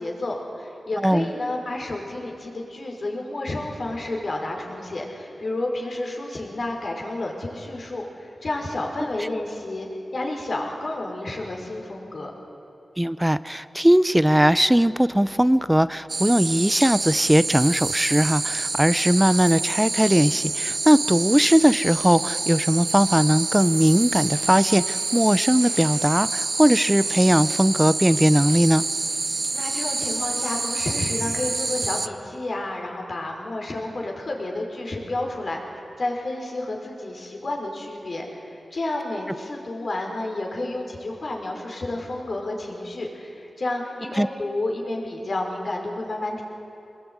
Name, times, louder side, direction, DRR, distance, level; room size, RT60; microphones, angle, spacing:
voice 1, 0.0-9.9 10.1-12.3 29.5-46.4, left 2 dB, 55° left, 1 dB, 5.3 m, -30 dB
voice 2, 13.0-28.8 44.1-44.3, equal, 5° right, 15 dB, 0.5 m, -19 dB
sound 1, 16.1-32.1, right 3 dB, 45° right, 0.8 m, -27 dB
24.5 x 21.0 x 9.6 m, 2.9 s
wide cardioid pair, 85°, 0 cm